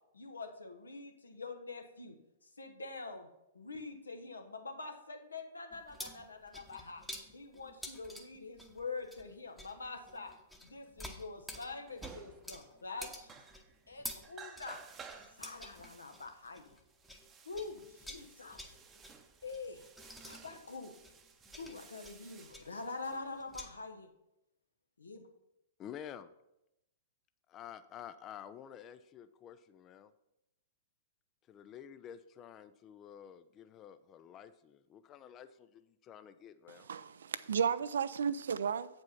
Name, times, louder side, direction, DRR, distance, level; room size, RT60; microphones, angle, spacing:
voice 1, 0.1-2.2 2.6-3.3 3.5-7.0 7.3-10.3 10.6-13.3 13.9-14.8 15.4-16.7 17.5-18.6 19.4-19.8 20.2-20.9 21.6-24.1 25.0-25.3, left 3 dB, 75° left, 1.0 m, -45 dB
sound 1, 5.7-17.3 17.5-23.7, left 1 dB, 5° left, 0.9 m, -50 dB
sound 2, 12.0-12.7 13.0-13.9 14.2-23.7, right 5 dB, 20° right, 0.8 m, -55 dB
voice 2, 25.8-26.3 27.5-30.1 31.5-36.9, left 9 dB, 25° left, 0.4 m, -50 dB
voice 3, 36.7-38.9, right 7 dB, 65° right, 0.4 m, -33 dB
8.1 x 5.2 x 5.6 m
figure-of-eight pair, 105°, 0 cm